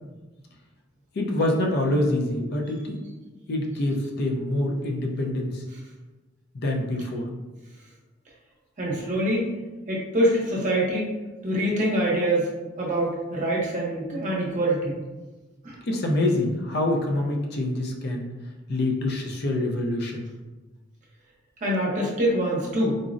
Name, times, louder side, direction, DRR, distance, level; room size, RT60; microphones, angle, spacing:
voice 1, 1.2-3.0 3.5-5.6 6.5-7.2 15.9-18.3 18.7-20.3, left 1 dB, 55° left, 1 dB, 0.5 m, -26 dB
voice 2, 8.8-9.5 9.9-11.2 11.4-12.5 12.8-15.0 15.6-15.8 21.6-22.9, right 1 dB, 40° right, -4 dB, 0.7 m, -24 dB
3.7 x 2.0 x 2.5 m, 1.2 s
head